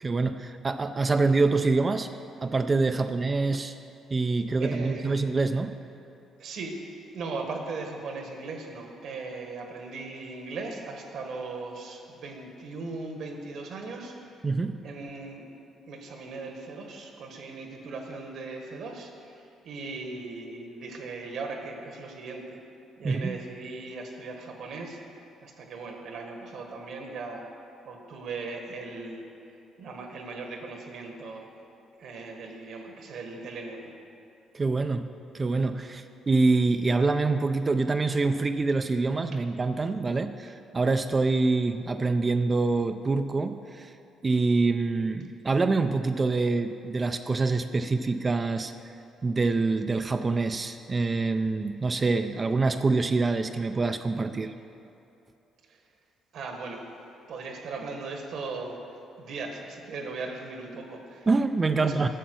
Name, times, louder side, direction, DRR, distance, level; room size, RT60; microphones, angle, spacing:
voice 1, 0.0-2.1 2.4-3.7 4.1-5.7 14.4-14.8 23.0-23.4 34.5-35.1 35.3-43.9 44.2-48.7 49.2-54.5 61.3-62.1, right 3 dB, 30° right, 8 dB, 0.4 m, -25 dB
voice 2, 4.6-5.2 6.4-6.7 7.1-14.1 14.8-15.4 15.9-22.6 23.0-25.0 25.4-27.4 27.8-29.2 29.8-31.5 32.0-33.9 55.7-55.8 56.3-56.8 57.3-58.8 59.2-61.3 61.7-62.1, right 3 dB, 70° right, 3 dB, 1.5 m, -38 dB
10.0 x 7.0 x 6.2 m, 2.7 s
supercardioid pair, 70°, 0 cm